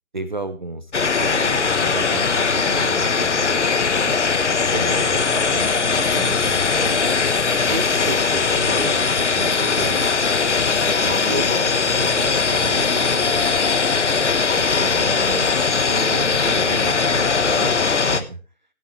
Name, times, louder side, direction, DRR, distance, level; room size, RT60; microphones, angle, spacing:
voice 1, 0.1-0.9 1.2-3.6 4.0-4.2 4.6-7.1 7.6-10.1 10.8-13.6 14.5-15.5 15.9-18.4, right 2 dB, 35° right, 10 dB, 0.9 m, -32 dB
sound 1, 0.9-18.2, left 5 dB, 55° left, 1.2 m, -20 dB
16.0 x 10.0 x 3.2 m, 0.33 s
figure-of-eight pair, 165°, 43 cm